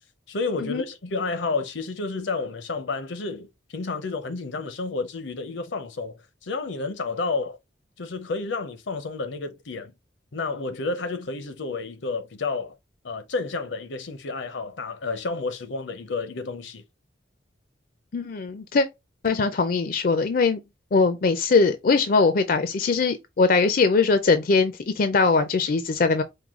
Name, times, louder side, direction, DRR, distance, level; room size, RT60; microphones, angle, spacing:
voice 1, 0.3-3.5 3.7-7.6 8.0-9.9 10.3-12.7 13.0-16.8, left 3 dB, 80° left, 0.7 m, -30 dB
voice 2, 18.1-18.9 19.2-20.6 20.9-26.2, left 4 dB, 50° left, 0.4 m, -21 dB
4.7 x 2.2 x 3.6 m
head